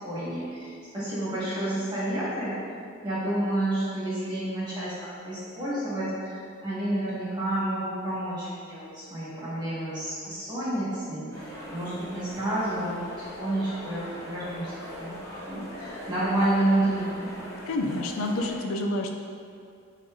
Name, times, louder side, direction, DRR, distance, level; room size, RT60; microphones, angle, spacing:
voice 1, 0.0-2.8 3.0-15.2 15.5-17.4, right 1 dB, 20° right, -10 dB, 1.5 m, -30 dB
sound 1, 11.3-18.6, equal, 15° left, 0.7 m, -41 dB
voice 2, 17.7-19.1, left 2 dB, 85° left, 3 dB, 0.4 m, -28 dB
6.1 x 3.0 x 2.5 m, 2.3 s
head